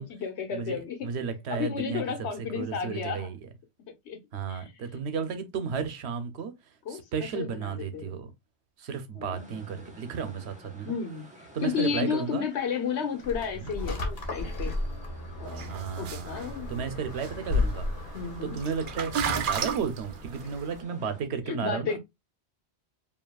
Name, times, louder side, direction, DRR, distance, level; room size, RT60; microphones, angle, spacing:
voice 1, 0.0-1.1 1.5-3.3 4.1-4.2 4.5-4.7 6.9-7.0 7.3-8.1 9.1-9.5 10.8-11.3 11.6-14.7 15.4-16.7 18.1-18.6 21.5-22.0, left 7 dB, 80° left, 1.2 m, -32 dB
voice 2, 0.5-2.3 2.5-3.5 4.3-6.5 6.9-8.3 8.8-11.0 11.5-12.5 13.6-13.7 15.7-16.4 16.7-17.9 18.4-22.0, right 6 dB, 80° right, 1.0 m, -33 dB
sound 1, 9.3-21.2, left 1 dB, 5° right, 1.0 m, -52 dB
sound 2, 13.2-19.6, left 2 dB, 65° left, 1.3 m, -34 dB
sound 3, 15.5-20.8, right 8 dB, 60° right, 0.7 m, -35 dB
4.9 x 2.8 x 2.3 m
omnidirectional pair, 1.1 m